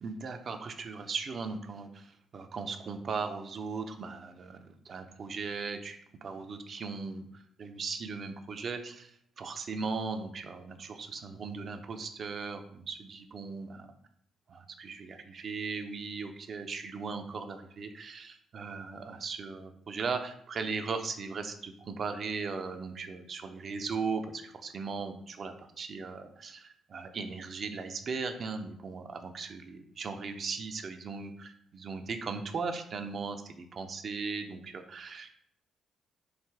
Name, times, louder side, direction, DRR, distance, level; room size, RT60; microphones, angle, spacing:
voice 1, 0.0-13.9 14.5-35.3, right 4 dB, 50° right, 7 dB, 0.5 m, -38 dB
4.8 x 2.5 x 3.4 m, 0.69 s
hypercardioid pair, 45°, 0 cm